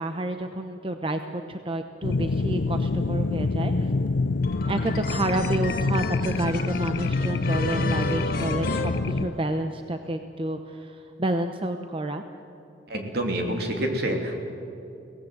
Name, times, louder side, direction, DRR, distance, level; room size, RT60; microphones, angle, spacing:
voice 1, 0.0-3.9 4.7-12.2, right 1 dB, 30° right, 6 dB, 0.9 m, -30 dB
sound 1, 2.0-9.3, left 3 dB, 75° left, 0.6 m, -26 dB
sound 2, 4.4-9.8, left 3 dB, 55° left, 1.9 m, -34 dB
voice 2, 12.9-14.4, right 1 dB, 65° right, 2 dB, 3.3 m, -27 dB
23.0 x 18.0 x 7.9 m, 2.9 s
head